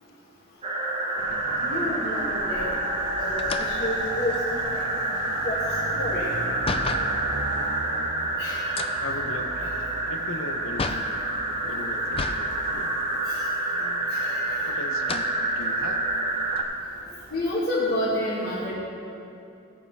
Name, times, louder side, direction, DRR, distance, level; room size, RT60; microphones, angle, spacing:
sound 1, 0.6-16.6, right 2 dB, 30° right, 1.3 m, -28 dB
sound 2, 1.2-17.5, right 2 dB, 60° right, 0.8 m, -42 dB
voice 1, 1.6-2.7 3.2-4.8 5.3-6.3 8.4-8.6 11.6-11.8 13.3-13.5 14.1-14.6 17.3-18.7, left 1 dB, 50° left, -7 dB, 1.9 m, -30 dB
sound 3, 3.4-7.2 8.6-11.2 12.1-12.5 12.9-13.0 14.1-14.6 15.0-15.4 16.0-16.1 16.5-17.9, left 4 dB, 30° left, 0.4 m, -34 dB
voice 2, 9.0-9.7 10.1-11.1 11.6-13.0 13.7-14.1 14.7-16.0, left 2 dB, 85° left, 5 dB, 1.0 m, -38 dB
17.0 x 5.8 x 4.8 m, 2.7 s
head